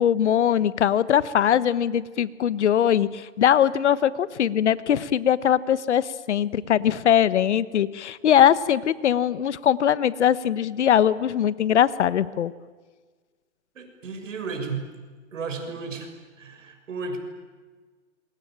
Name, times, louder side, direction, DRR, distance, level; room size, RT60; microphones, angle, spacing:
voice 1, 0.0-12.5, left 9 dB, 65° left, 17 dB, 1.3 m, -21 dB
voice 2, 13.7-14.9 15.3-17.2, right 4 dB, 75° right, 5 dB, 6.6 m, -34 dB
27.5 x 23.5 x 9.0 m, 1.4 s
hypercardioid pair, 160°, 38 cm